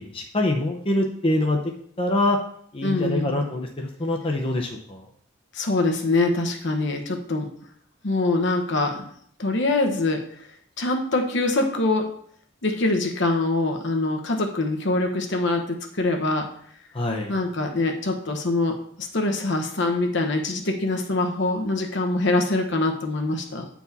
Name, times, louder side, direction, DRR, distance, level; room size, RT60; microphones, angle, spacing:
voice 1, 0.0-1.6 2.0-2.4 2.7-5.0 16.9-17.3, left 1 dB, 30° left, 1 dB, 0.7 m, -24 dB
voice 2, 2.8-3.4 5.5-7.5 8.0-9.1 9.4-10.2 10.8-12.1 12.6-16.5 17.3-23.7, left 2 dB, 60° left, 4 dB, 1.0 m, -24 dB
8.6 x 4.6 x 4.0 m, 0.63 s
head